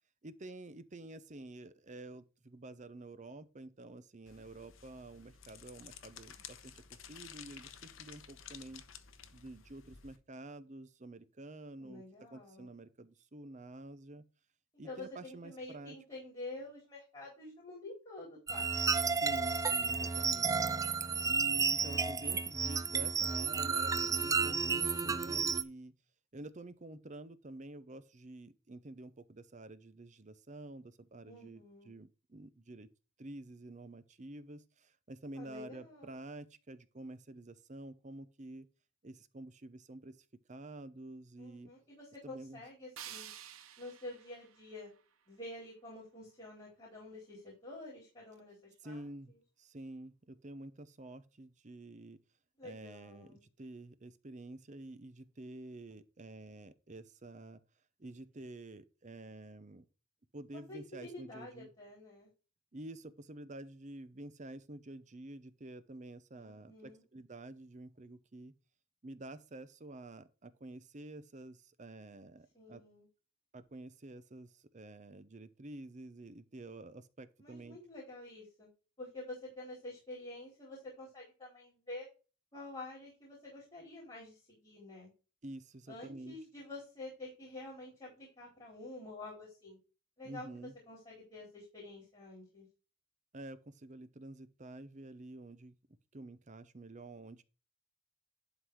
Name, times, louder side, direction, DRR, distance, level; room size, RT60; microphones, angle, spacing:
voice 1, 0.2-8.8 9.3-12.0 12.3-14.2 14.8-16.0 19.2-20.7 21.2-25.9 26.3-32.9 33.2-38.7 39.0-40.2 40.5-41.7 42.2-42.6 48.8-52.2 52.6-57.6 58.0-59.9 60.3-61.7 62.7-68.5 69.0-72.8 73.5-77.8 85.4-86.3 90.2-90.7 93.3-95.8 96.1-97.4, right 2 dB, 35° right, 0.7 m, -49 dB
sound 1, 4.3-10.2, left 8 dB, 65° left, 1.0 m, -53 dB
voice 2, 11.8-12.7 14.8-18.9 24.4-25.0 31.3-32.0 35.3-36.1 41.4-43.3 43.8-44.9 45.3-49.4 52.6-53.4 60.5-62.3 66.3-67.0 72.5-73.1 77.4-78.7 79.0-82.1 82.5-85.1 85.9-89.8 90.2-92.7, left 2 dB, 25° left, 3.9 m, -49 dB
sound 2, 18.5-25.6, right 5 dB, 15° right, 0.4 m, -32 dB
sound 3, 43.0-45.9, right 10 dB, 80° right, 0.9 m, -52 dB
11.5 x 4.0 x 4.7 m
head